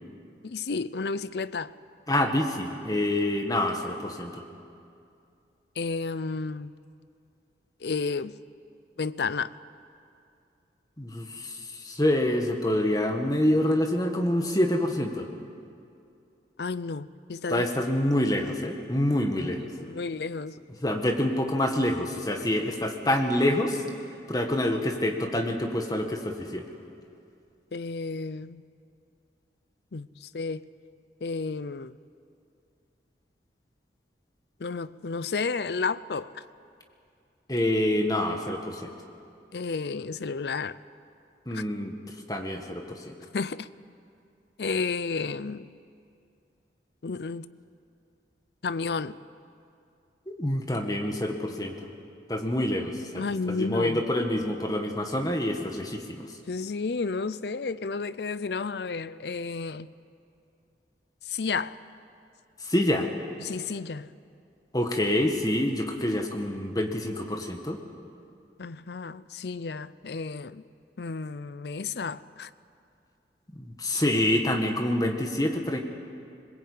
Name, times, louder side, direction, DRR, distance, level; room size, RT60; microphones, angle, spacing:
voice 1, 0.4-1.7 5.8-6.8 7.8-8.4 9.0-9.5 16.6-17.7 19.7-20.6 27.7-28.6 29.9-30.7 31.2-31.9 34.6-36.4 39.5-40.8 41.5-41.6 43.3-43.7 44.6-45.7 47.0-47.5 48.6-49.2 53.2-54.0 56.5-59.9 61.2-61.8 63.4-64.1 68.6-70.6 71.0-72.5, left 4 dB, 70° left, 17 dB, 0.6 m, -32 dB
voice 2, 2.1-4.4 11.0-15.3 17.5-19.7 20.8-23.8 24.3-26.7 37.5-38.9 41.5-41.9 42.3-43.2 50.3-51.8 52.3-56.3 62.6-63.1 64.7-67.8 73.5-75.8, left 1 dB, 20° left, 3 dB, 1.7 m, -27 dB
21.5 x 21.5 x 8.6 m, 2.5 s
head